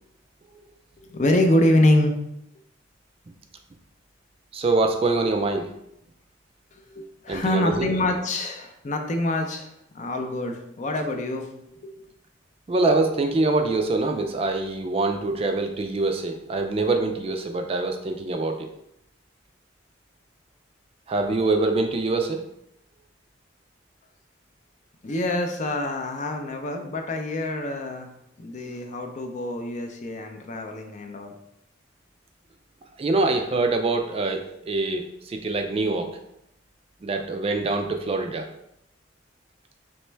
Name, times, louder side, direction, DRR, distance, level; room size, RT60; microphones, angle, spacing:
voice 1, 1.1-2.2 6.9-9.7 9.9-11.9 25.0-28.1 28.4-31.3, left 1 dB, 40° left, 4 dB, 0.5 m, -25 dB
voice 2, 4.5-5.7 7.3-7.9 12.7-18.7 21.1-22.4 33.0-36.2 37.0-38.5, right 3 dB, 30° right, 5 dB, 0.3 m, -24 dB
4.4 x 3.0 x 3.3 m, 0.78 s
head